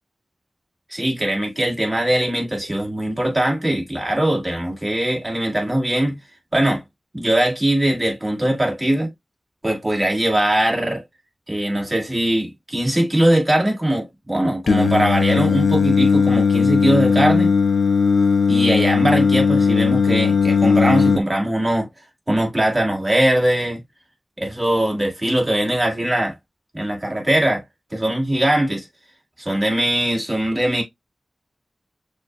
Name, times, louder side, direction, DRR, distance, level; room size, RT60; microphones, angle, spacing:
voice 1, 0.9-6.2 6.5-6.8 7.1-9.1 9.6-11.0 11.5-17.5 18.5-21.9 22.3-23.8 24.4-26.3 26.7-27.6 27.9-28.9 29.4-30.8, right 1 dB, 30° right, 2.2 m, -21 dB
Singing, 14.7-21.2, left 5 dB, 85° left, 0.6 m, -17 dB
6.7 x 2.5 x 2.2 m
wide cardioid pair, 60°, 0 cm